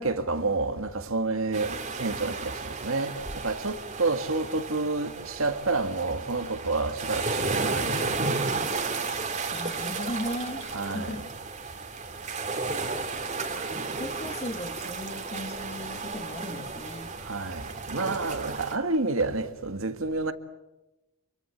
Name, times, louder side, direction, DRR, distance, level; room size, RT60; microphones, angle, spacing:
voice 1, 0.0-8.3 10.7-11.2 17.2-20.3, right 3 dB, 70° right, 1.9 m, -29 dB
waves hit shore barcelona, 1.5-18.7, right 3 dB, 35° right, 2.7 m, -33 dB
voice 2, 9.5-11.3 13.9-17.2, left 1 dB, 30° left, 2.0 m, -37 dB
28.0 x 23.5 x 8.2 m
head